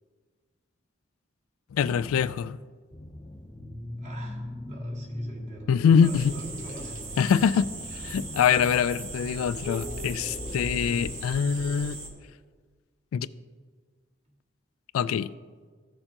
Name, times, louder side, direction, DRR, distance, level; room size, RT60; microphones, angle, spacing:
voice 1, 1.7-2.6 5.7-6.3 7.2-7.7 7.9-12.0 13.1-13.3 14.9-15.3, left 7 dB, 85° left, 0.3 m, -24 dB
sound 1, 2.9-11.2, left 1 dB, 20° left, 0.6 m, -40 dB
voice 2, 4.0-7.0, right 1 dB, 35° right, 1.8 m, -45 dB
sound 2, 6.0-12.1, right 2 dB, 75° right, 1.7 m, -39 dB
15.0 x 6.6 x 2.9 m
head